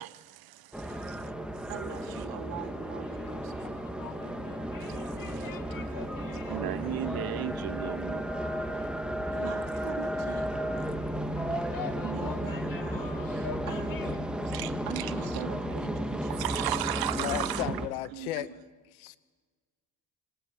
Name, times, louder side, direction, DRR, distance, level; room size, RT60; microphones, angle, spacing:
voice 1, 0.0-1.7 4.8-5.0 5.3-5.5 6.5-8.3 14.4-15.1 16.3-17.7, right 14 dB, 55° right, 1.1 m, -35 dB
sound 1, 0.7-17.9, equal, ahead, 2.1 m, -34 dB
voice 2, 1.7-7.0 9.3-10.5 12.0-14.3 14.9-16.4 16.7-17.3 18.1-18.5, right 10 dB, 80° right, 3.0 m, -44 dB
sound 2, 2.8-14.2, left 9 dB, 50° left, 1.7 m, -46 dB
sound 3, 7.9-16.1, left 3 dB, 20° left, 7.7 m, -50 dB
voice 3, 17.2-18.5 18.9-19.2, left 14 dB, 90° left, 1.1 m, -34 dB
27.0 x 17.0 x 9.1 m
hypercardioid pair, 65°, 42 cm